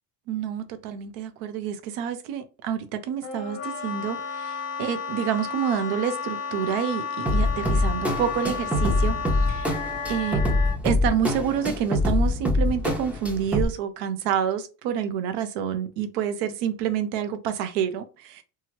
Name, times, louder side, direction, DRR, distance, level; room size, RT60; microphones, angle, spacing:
voice 1, 0.3-9.7 10.1-10.4 10.8-18.4, right 8 dB, 80° right, 0.6 m, -28 dB
Wind instrument woodwind instrument, 3.2-10.8, left 5 dB, 35° left, 0.8 m, -32 dB
sound 1, 7.3-13.7, left 1 dB, 5° right, 0.7 m, -24 dB
2.8 x 2.3 x 3.0 m
supercardioid pair, 85°, 42 cm